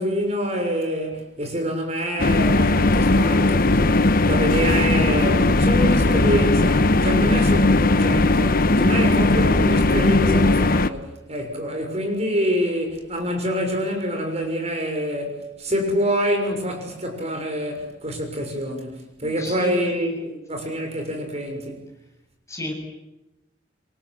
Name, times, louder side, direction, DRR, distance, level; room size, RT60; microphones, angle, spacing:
voice 1, 0.0-21.8, equal, 35° right, 6.5 m, -26 dB
sound 1, 2.2-10.9, left 2 dB, 50° left, 1.1 m, -18 dB
voice 2, 19.2-20.1 22.5-22.7, left 1 dB, 15° left, 7.8 m, -32 dB
28.0 x 26.5 x 7.9 m
head